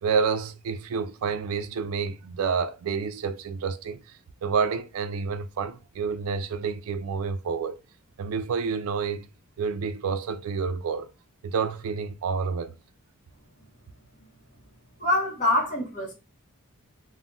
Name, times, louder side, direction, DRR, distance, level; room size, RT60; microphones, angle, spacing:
voice 1, 0.0-4.0 4.4-7.8 8.2-9.3 9.6-11.1 11.4-12.7, right 5 dB, 70° right, 0.3 m, -29 dB
voice 2, 15.0-16.1, left 1 dB, 35° left, 0.7 m, -25 dB
2.3 x 2.0 x 3.6 m
head